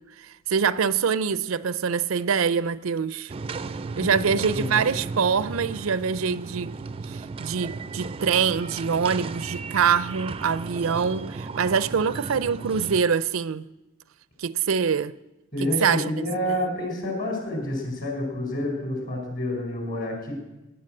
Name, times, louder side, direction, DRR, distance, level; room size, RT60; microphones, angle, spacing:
voice 1, 0.5-3.3 4.0-6.8 7.1-13.6 14.4-15.1 15.6-16.0 16.5-16.6, right 6 dB, 80° right, 0.5 m, -24 dB
sound 1, 3.3-13.0, right 4 dB, 30° right, 0.4 m, -35 dB
voice 2, 15.5-20.3, left 1 dB, 45° left, 4.9 m, -29 dB
17.0 x 10.0 x 7.7 m
head